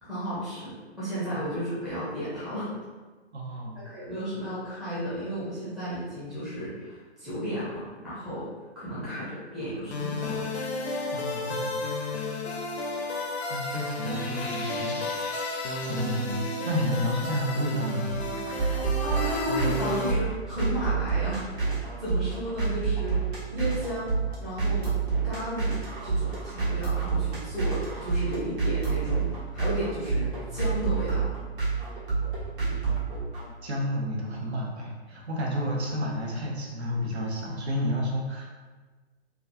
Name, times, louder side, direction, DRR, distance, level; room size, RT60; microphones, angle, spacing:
voice 1, 0.0-2.7 3.8-8.5 8.8-10.5 19.0-23.2 23.5-24.9 25.2-31.3, equal, ahead, -13 dB, 0.5 m, -33 dB
voice 2, 3.3-3.8 8.9-9.1 11.1-11.8 13.5-15.5 15.9-16.4 16.7-18.2 33.6-38.5, equal, 75° right, -2 dB, 0.8 m, -31 dB
sound 1, 9.9-20.1, left 2 dB, 80° left, 0.6 m, -32 dB
sound 2, 18.1-33.5, right 5 dB, 55° right, 1.3 m, -28 dB
2.9 x 2.3 x 2.5 m, 1.3 s
figure-of-eight pair, 130°, 32 cm